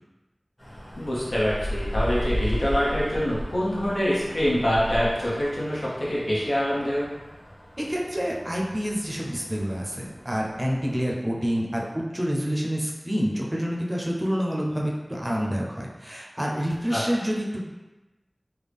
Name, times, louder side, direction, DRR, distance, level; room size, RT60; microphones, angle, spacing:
sound 1, 0.6-11.0, equal, 35° left, 1.0 m, -35 dB
voice 1, 1.0-7.1 16.9-17.0, equal, 85° left, -7 dB, 0.9 m, -25 dB
voice 2, 7.8-17.6, equal, 30° right, -2 dB, 0.5 m, -28 dB
3.6 x 2.2 x 3.4 m, 1.1 s
wide cardioid pair, 45°, 0 cm